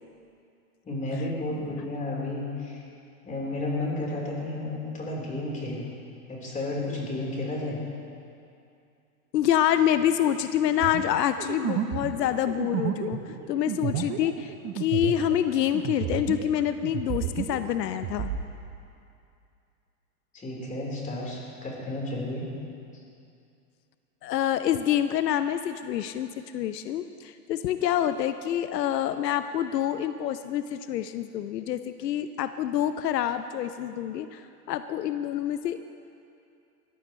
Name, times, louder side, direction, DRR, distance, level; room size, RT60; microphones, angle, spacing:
voice 1, 0.8-2.8 3.2-5.9 6.3-7.8 20.3-22.5, left 2 dB, 15° left, -3 dB, 4.0 m, -32 dB
voice 2, 9.3-13.2 13.5-18.3 24.2-26.3 26.5-34.4 34.7-35.9, left 10 dB, 85° left, 11 dB, 0.7 m, -27 dB
sound 1, 10.8-16.6 16.8-18.4, right 9 dB, 30° right, 1.0 m, -31 dB
20.0 x 14.5 x 3.2 m, 2.5 s
hypercardioid pair, 120°, 48 cm